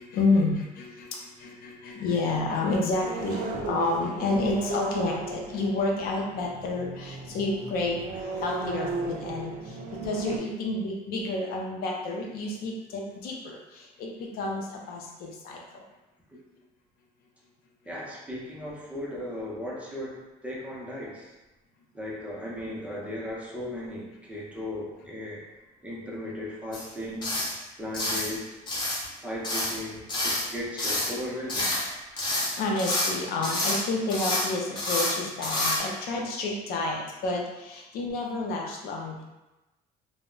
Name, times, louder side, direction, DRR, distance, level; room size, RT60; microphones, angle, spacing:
voice 1, 0.0-15.8 32.3-39.2, left 2 dB, 70° left, -1 dB, 0.5 m, -30 dB
sound 1, 3.0-10.4, right 3 dB, 55° right, 0.4 m, -35 dB
voice 2, 17.9-21.3 21.9-25.4 25.8-27.4 27.8-28.5 29.2-31.7, left 1 dB, 10° right, -5 dB, 0.5 m, -36 dB
sound 2, 26.7-26.9 27.2-27.6 27.9-28.3 28.7-29.1 29.4-29.8 30.1-30.5 30.8-31.1 31.5-31.9 32.2-33.1 33.4-33.8 34.1-34.5 34.8-35.2 35.4-35.8, left 1 dB, 30° left, 0.8 m, -28 dB
2.1 x 2.0 x 3.7 m, 1.0 s
cardioid pair, 140°, 16 cm